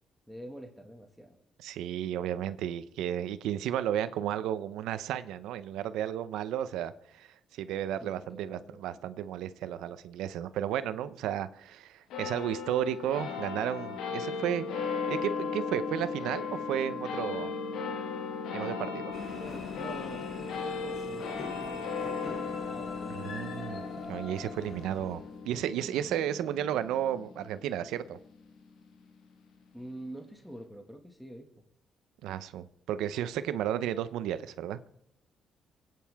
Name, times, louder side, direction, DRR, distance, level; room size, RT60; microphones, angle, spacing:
voice 1, 0.3-1.4 8.0-8.8 19.3-23.4 29.7-31.5, right 1 dB, ahead, 3 dB, 1.9 m, -46 dB
voice 2, 1.6-17.5 18.5-19.1 23.1-28.2 32.2-34.8, right 10 dB, 90° right, 13 dB, 0.7 m, -33 dB
sound 1, 12.1-28.8, left 5 dB, 85° left, 1.7 m, -37 dB
sound 2, 19.1-25.4, left 3 dB, 60° left, 2.4 m, -44 dB
28.0 x 9.4 x 3.6 m, 0.76 s
cardioid pair, 90°, 0 cm